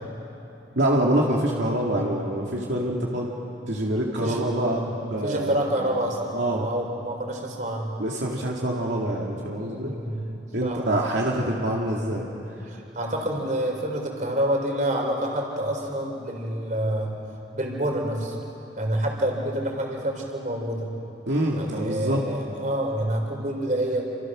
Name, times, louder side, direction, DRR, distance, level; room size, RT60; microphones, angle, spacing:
voice 1, 0.8-3.3 3.7-5.7 6.3-6.7 8.0-9.9 10.5-12.3 21.3-22.3, right 1 dB, 75° right, -2 dB, 2.4 m, -25 dB
voice 2, 5.2-6.2 6.5-8.0 9.6-10.2 10.6-11.0 12.7-17.2 17.5-18.4 18.8-20.9 21.5-24.0, right 1 dB, 45° right, 1 dB, 4.1 m, -27 dB
29.0 x 26.0 x 6.3 m, 2.9 s
head